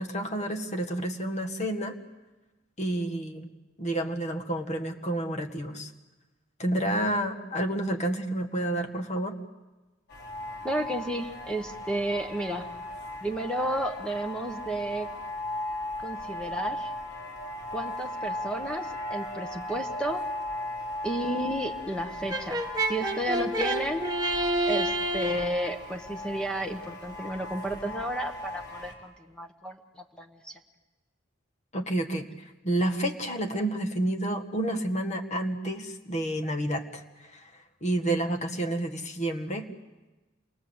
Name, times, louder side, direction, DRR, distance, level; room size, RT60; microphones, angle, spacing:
voice 1, 0.0-2.0 2.8-3.5 3.8-5.9 6.6-9.4 31.7-37.0 37.3-39.7, right 1 dB, 35° left, 5 dB, 1.7 m, -30 dB
sound 1, 10.1-28.9, left 1 dB, 55° left, 4.6 m, -37 dB
voice 2, 10.6-12.7 13.2-15.1 16.0-16.9 17.7-20.2 21.0-24.0 24.7-30.6, right 1 dB, 5° left, 4 dB, 1.2 m, -32 dB
Brass instrument, 22.3-25.6, right 1 dB, 20° right, 1.5 m, -28 dB
28.0 x 21.5 x 7.9 m, 1.2 s
head